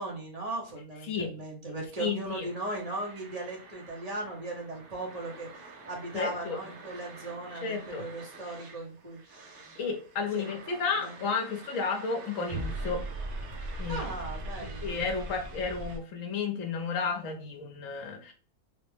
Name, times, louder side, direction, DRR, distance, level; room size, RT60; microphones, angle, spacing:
voice 1, 0.0-9.4 10.4-10.5 11.0-11.2 13.9-15.0, right 2 dB, 30° right, -1 dB, 0.8 m, -38 dB
voice 2, 2.0-2.5 6.1-6.6 7.6-8.0 9.8-13.0 13.8-14.1 14.6-18.3, left 5 dB, 65° left, 4 dB, 1.1 m, -32 dB
sound 1, 2.3-16.0, right 2 dB, 60° right, 0.5 m, -42 dB
3.4 x 2.1 x 3.2 m, 0.38 s
omnidirectional pair, 1.5 m